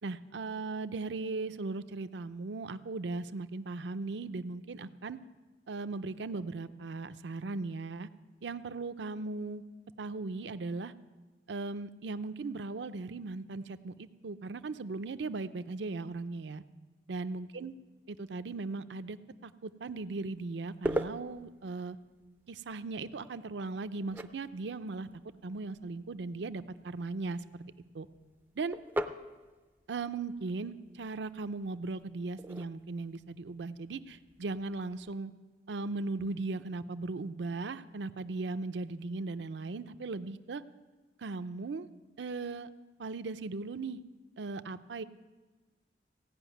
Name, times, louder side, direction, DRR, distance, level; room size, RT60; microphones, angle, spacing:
voice 1, 0.0-5.2 5.7-8.1 8.4-9.6 10.0-10.9 11.5-16.6 17.1-17.7 18.1-22.0 22.5-25.1 25.4-27.6 27.9-28.1 28.6-28.8 29.9-35.3 35.7-40.6 41.2-41.9 42.2-42.7 43.0-44.0 44.4-45.0, right 3 dB, 70° right, 12 dB, 0.5 m, -38 dB
sound 1, 19.9-35.1, right 1 dB, 10° right, 0.4 m, -43 dB
16.0 x 5.7 x 9.1 m, 1.3 s
head